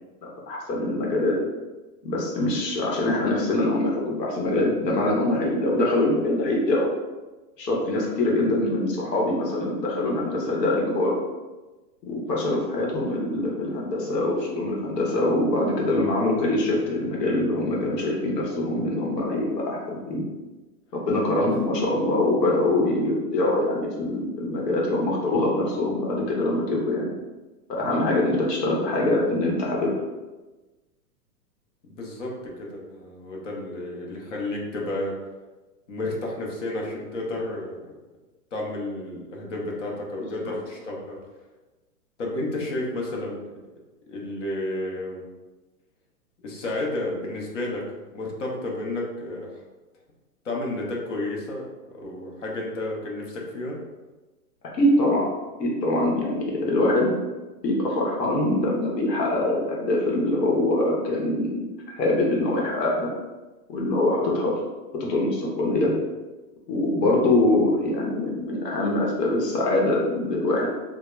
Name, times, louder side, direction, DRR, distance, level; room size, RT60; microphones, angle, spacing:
voice 1, 0.5-1.3 2.0-6.9 7.6-11.1 12.0-20.2 20.9-27.1 27.7-29.9 40.4-40.5 54.7-55.3 55.6-57.2 57.6-63.1 63.7-64.5 65.1-65.9 66.7-70.7, left 1 dB, 85° left, -2 dB, 0.9 m, -24 dB
voice 2, 31.8-35.2 35.9-37.8 38.5-41.2 42.2-43.5 44.1-45.2 46.4-49.5 50.4-51.7 51.9-53.8, left 1 dB, 50° left, -2 dB, 0.6 m, -31 dB
2.3 x 2.0 x 3.0 m, 1.2 s
hypercardioid pair, 170°, 48 cm